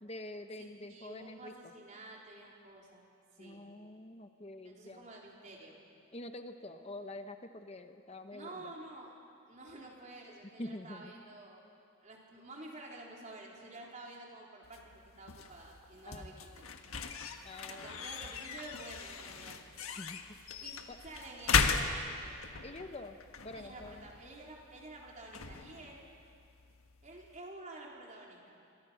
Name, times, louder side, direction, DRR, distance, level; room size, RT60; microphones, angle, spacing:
voice 1, 0.0-1.5 3.4-5.0 6.1-8.7 10.6-11.1 16.1-16.3 17.4-17.9 19.8-20.2 20.9-21.0 22.6-23.2 23.4-24.1, left 1 dB, 30° left, 7 dB, 0.9 m, -46 dB
voice 2, 0.6-3.0 3.3-3.6 4.6-5.8 8.3-9.1 9.5-11.6 12.0-16.6 17.7-19.6 20.6-22.4 23.5-26.0 27.0-28.6, right 2 dB, 35° right, -2 dB, 3.9 m, -50 dB
sound 1, 14.6-27.4, left 5 dB, 75° left, 1.4 m, -38 dB
28.0 x 23.0 x 5.8 m, 2.4 s
head